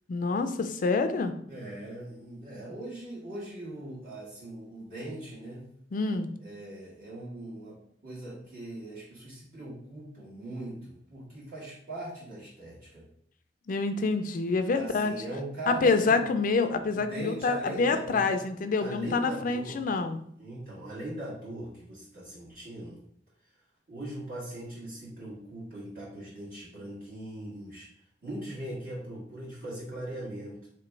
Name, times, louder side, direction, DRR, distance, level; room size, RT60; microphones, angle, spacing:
voice 1, 0.1-1.3 5.9-6.3 13.7-15.1 15.7-20.2, left 4 dB, 50° left, 9 dB, 0.4 m, -27 dB
voice 2, 1.5-5.7 6.4-13.1 14.7-16.2 16.9-18.4 18.8-19.8 20.4-23.0 23.9-27.9 28.2-30.7, right 1 dB, 55° right, -9 dB, 1.4 m, -40 dB
3.2 x 3.0 x 4.5 m, 0.67 s
head